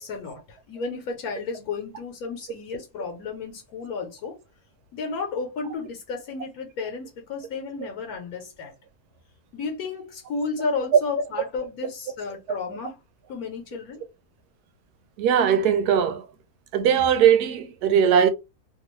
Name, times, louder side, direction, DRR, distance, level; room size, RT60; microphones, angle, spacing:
voice 1, 0.0-4.4 4.9-8.7 9.5-13.0 13.3-14.0, left 4 dB, 80° left, 1.3 m, -32 dB
voice 2, 15.2-16.3 16.7-18.3, right 8 dB, 85° right, 1.1 m, -19 dB
2.8 x 2.4 x 3.0 m
omnidirectional pair, 1.6 m